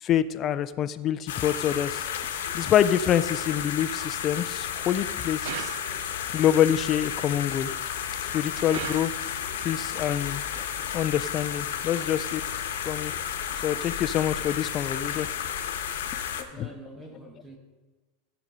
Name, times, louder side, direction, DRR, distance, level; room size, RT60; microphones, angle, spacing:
voice 1, 0.0-2.1 2.5-5.7 6.3-7.7 8.3-9.1 9.6-10.6 10.9-12.4 12.9-13.1 13.6-15.3 16.4-16.7, left 10 dB, 25° left, 11 dB, 0.3 m, -26 dB
sound 1, 1.3-16.4, left 9 dB, 80° left, 1.1 m, -32 dB
sound 2, 5.4-6.3 8.7-9.6, right 13 dB, 55° right, 0.4 m, -38 dB
voice 2, 16.5-17.6, right 2 dB, 10° right, 3 dB, 1.0 m, -45 dB
15.0 x 5.2 x 5.5 m, 1.3 s
supercardioid pair, 165°, 0 cm